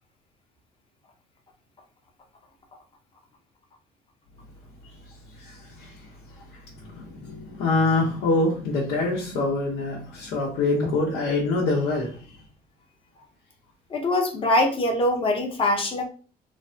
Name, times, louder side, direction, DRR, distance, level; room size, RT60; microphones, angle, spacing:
voice 1, 5.1-12.4, left 2 dB, 85° left, -4 dB, 0.8 m, -26 dB
voice 2, 13.9-16.0, left 1 dB, 30° left, 2 dB, 0.8 m, -23 dB
3.2 x 2.2 x 2.7 m, 0.39 s
cardioid pair, 110°, 17 cm